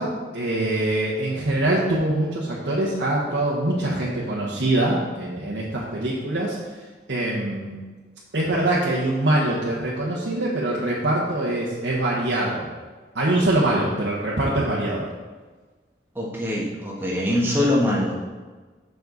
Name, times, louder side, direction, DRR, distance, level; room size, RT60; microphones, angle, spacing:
voice 1, 0.0-6.6 7.1-7.8 8.3-12.7 13.1-15.1, right 1 dB, 90° right, -6 dB, 1.3 m, -23 dB
voice 2, 16.1-18.2, left 1 dB, 10° right, -4 dB, 1.5 m, -23 dB
7.3 x 6.7 x 4.0 m, 1.3 s
head